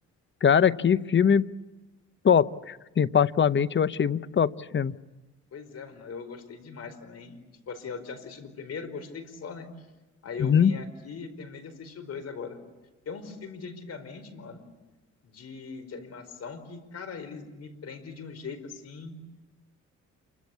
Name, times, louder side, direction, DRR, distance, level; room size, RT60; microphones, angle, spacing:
voice 1, 0.4-1.4 2.2-4.9 10.4-10.7, left 7 dB, 40° left, 15 dB, 0.9 m, -22 dB
voice 2, 5.5-9.7 10.2-12.6 13.0-14.6 15.2-19.2, left 5 dB, 55° left, 11 dB, 4.8 m, -40 dB
28.5 x 24.5 x 8.6 m, 1.1 s
cardioid pair, 90°, 30 cm